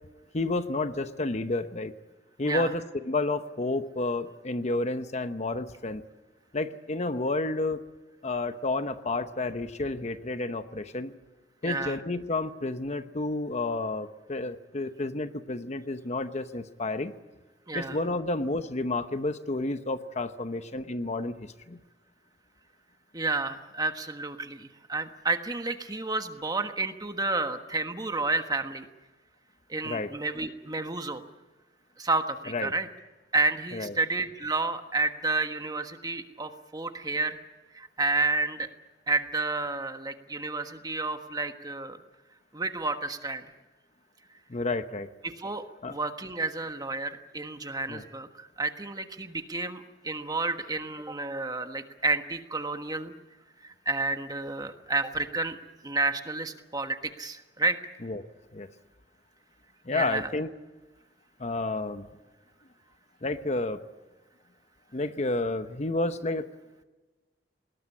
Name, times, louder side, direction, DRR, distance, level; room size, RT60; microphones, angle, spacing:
voice 1, 0.3-1.9 2.4-6.0 6.5-7.8 8.2-11.1 11.6-17.1 17.7-21.8 29.8-30.1 32.5-32.7 33.7-33.9 44.5-45.1 45.8-46.0 47.9-48.0 58.0-58.2 58.5-58.7 59.8-60.5 61.4-62.1 63.2-63.8 64.9-66.5, left 2 dB, 40° left, 10 dB, 0.9 m, -30 dB
voice 2, 11.6-12.0 17.7-18.0 23.1-28.9 29.7-31.2 32.0-32.9 33.3-37.4 37.7-38.7 39.1-42.0 42.5-43.4 45.2-53.1 53.6-55.6 55.8-57.8 59.9-60.3, right 3 dB, 20° right, 7 dB, 1.4 m, -30 dB
20.5 x 18.5 x 9.8 m, 1.2 s
head